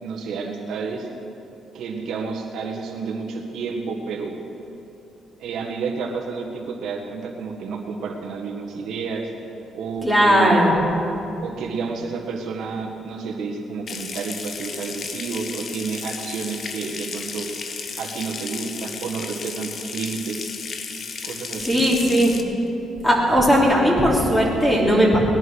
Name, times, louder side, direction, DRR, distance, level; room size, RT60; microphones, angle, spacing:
voice 1, 0.0-1.1 1.7-4.4 5.4-9.3 9.7-10.6 11.4-17.5 18.0-20.4 21.2-21.9, right 5 dB, 75° right, -1 dB, 1.7 m, -30 dB
voice 2, 10.0-10.7 21.6-22.3 23.0-25.2, equal, 15° left, -4 dB, 3.6 m, -17 dB
Water tap faucet / Sink (filling or washing) / Trickle dribble, 13.9-22.4, left 5 dB, 55° left, 1.1 m, -34 dB
18.5 x 10.5 x 6.4 m, 2.9 s
cardioid pair, 90°, 0 cm